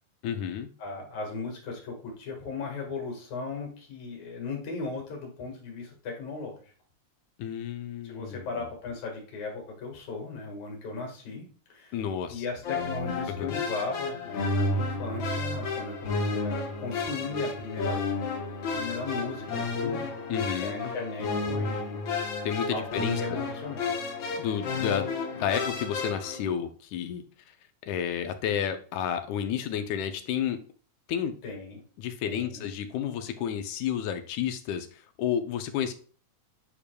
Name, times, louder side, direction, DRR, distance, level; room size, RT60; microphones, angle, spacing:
voice 1, 0.2-0.7 7.4-8.7 11.9-12.4 13.4-13.6 20.3-20.9 22.5-23.4 24.4-25.1 25.4-27.2 27.9-30.6 31.1-31.4 32.0-35.9, left 9 dB, 90° left, 8 dB, 2.1 m, -31 dB
voice 2, 0.8-6.6 8.0-11.4 11.7-12.0 12.3-18.3 18.7-20.0 20.6-22.1 22.7-23.9 31.4-31.8 32.2-32.7, left 3 dB, 75° left, 1 dB, 3.0 m, -37 dB
sound 1, 12.6-26.4, left 3 dB, 55° left, 1.4 m, -31 dB
8.5 x 5.0 x 2.3 m, 0.43 s
omnidirectional pair, 3.3 m